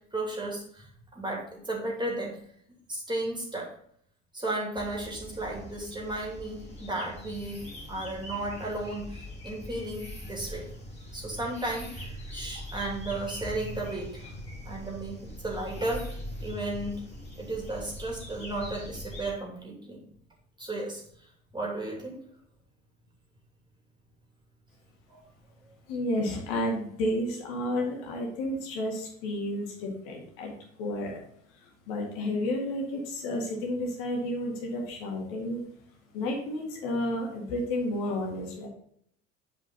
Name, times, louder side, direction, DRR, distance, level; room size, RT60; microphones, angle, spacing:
voice 1, 0.1-0.9 1.1-2.4 2.9-3.7 4.3-7.6 7.9-10.7 11.1-14.2 14.6-17.0 17.4-20.0 20.6-21.0 21.5-22.2 25.1-25.2, right 2 dB, 10° right, -2 dB, 2.7 m, -34 dB
sound 1, 4.8-19.3, left 1 dB, 15° left, 2.8 m, -42 dB
voice 2, 25.9-30.5 30.8-31.2 31.9-35.6 36.1-38.7, left 1 dB, 55° left, 0 dB, 1.8 m, -31 dB
8.7 x 5.1 x 3.9 m, 0.65 s
figure-of-eight pair, 65°, 37 cm